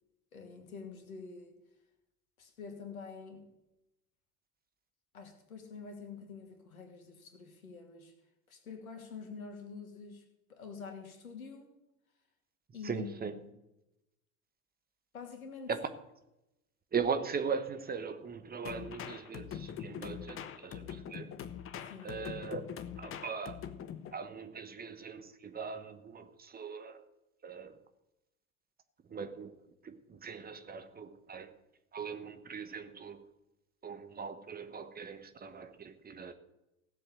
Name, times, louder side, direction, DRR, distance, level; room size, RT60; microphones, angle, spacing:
voice 1, 0.3-1.6 2.4-3.4 5.1-8.1 8.5-10.2 10.5-11.7 12.7-13.1 15.1-15.7 21.9-22.2, left 5 dB, 75° left, 2.4 m, -46 dB
voice 2, 12.8-13.4 15.7-15.9 16.9-21.4 22.0-22.6 23.0-23.7 24.1-27.0 27.4-27.8 29.0-31.5 31.9-33.3 33.8-36.3, right 5 dB, 20° right, 1.1 m, -39 dB
sound 1, 18.7-24.1, left 8 dB, 30° left, 1.0 m, -43 dB
16.5 x 7.7 x 6.5 m
figure-of-eight pair, 70°, 43 cm